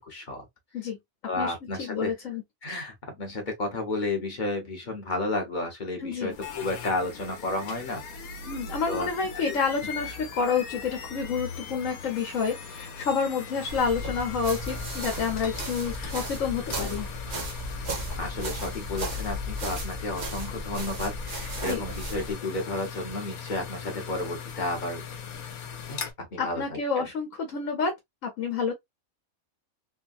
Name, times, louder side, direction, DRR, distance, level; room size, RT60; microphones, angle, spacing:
voice 1, 0.1-0.5 1.3-2.1 2.6-8.0 8.9-9.1 16.1-16.2 18.2-25.0 25.9-26.0 26.3-27.0, left 2 dB, 40° left, 0.9 m, -32 dB
voice 2, 1.4-2.4 6.0-6.4 8.4-17.1 21.7-21.8 26.4-27.9 28.2-28.7, left 5 dB, 65° left, 1.2 m, -29 dB
sound 1, 6.3-26.1, left 6 dB, 90° left, 1.2 m, -39 dB
sound 2, 13.7-22.3, equal, 40° right, 0.7 m, -35 dB
3.4 x 2.2 x 2.4 m
omnidirectional pair, 1.5 m